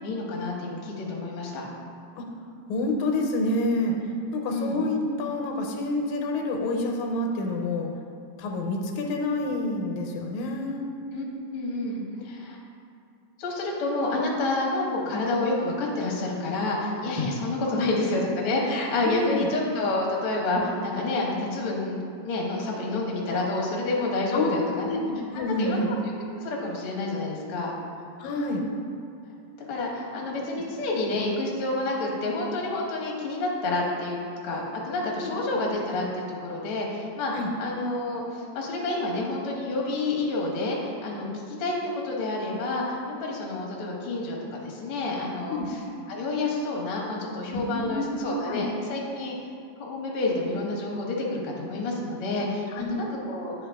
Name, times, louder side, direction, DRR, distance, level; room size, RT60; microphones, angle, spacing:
voice 1, 0.0-1.6 4.5-4.8 11.1-12.6 13.4-25.0 25.6-25.9 26.4-27.7 29.7-34.2 34.4-37.3 37.6-45.8 46.1-49.4 49.8-53.5, left 2 dB, 60° left, -2 dB, 1.6 m, -29 dB
voice 2, 2.7-4.0 4.3-7.9 8.4-10.8 17.8-17.9 19.0-19.5 20.5-20.7 24.3-25.9 28.2-28.7 30.5-30.6 35.2-35.6 37.3-37.5 45.5-45.7 47.5-48.7 52.8-52.9, left 2 dB, 90° left, 2 dB, 2.1 m, -28 dB
8.6 x 4.6 x 3.4 m, 2.3 s
omnidirectional pair, 3.3 m